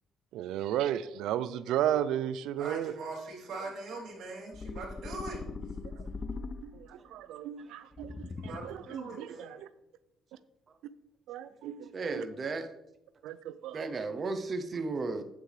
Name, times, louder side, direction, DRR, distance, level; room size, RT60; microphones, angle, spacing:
voice 1, 0.3-2.9 6.6-8.3 8.6-9.5 11.3-12.2 13.2-13.8, right 11 dB, 80° right, 0.4 m, -34 dB
voice 2, 2.6-5.4 8.4-9.6, right 3 dB, 60° right, 3.0 m, -41 dB
sound 1, 4.5-7.0 7.9-8.9, left 3 dB, 20° left, 0.4 m, -40 dB
voice 3, 11.9-12.7 13.7-15.2, right 3 dB, 25° right, 0.7 m, -34 dB
8.6 x 7.9 x 3.3 m
cardioid pair, 175°, 0 cm